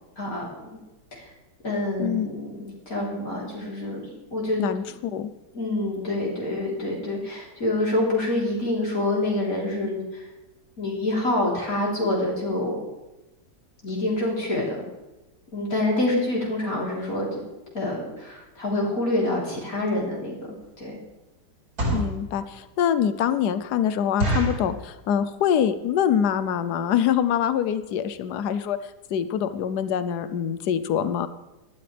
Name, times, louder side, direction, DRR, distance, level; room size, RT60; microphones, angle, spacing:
voice 1, 0.2-0.5 1.1-1.2 1.6-4.6 5.5-10.3 10.8-12.8 13.8-14.8 15.5-17.4 17.7-20.3 20.8-20.9, left 1 dB, 50° left, -4 dB, 4.3 m, -26 dB
voice 2, 4.6-5.3 21.9-31.3, left 9 dB, 70° left, 12 dB, 1.3 m, -25 dB
sound 1, 20.0-20.1 20.6-20.8 21.5-22.2 22.7-22.8 23.2-23.3 23.6-23.7 24.2-24.7 25.3-25.6 25.8-25.9 26.2-26.4 27.0-27.1 27.3-27.5 27.8-27.9 28.1-28.2, right 1 dB, 55° right, 4.5 m, -27 dB
18.5 x 13.0 x 3.4 m, 1.0 s
omnidirectional pair, 1.9 m